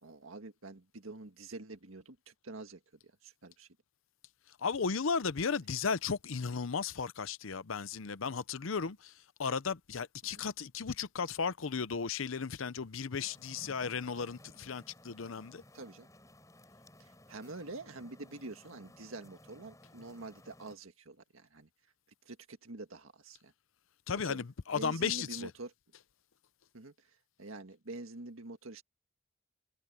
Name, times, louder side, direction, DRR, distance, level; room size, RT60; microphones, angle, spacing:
voice 1, 0.0-3.8 15.7-16.1 17.0-21.7 22.2-23.5 24.2-24.4 24.7-25.7 26.7-28.8, right 2 dB, 90° right, 1.8 m, -47 dB
voice 2, 4.6-9.1 9.4-15.6 24.1-25.5, left 5 dB, 80° left, 0.7 m, -35 dB
sound 1, 13.2-20.8, left 1 dB, 15° left, 7.3 m, -58 dB
head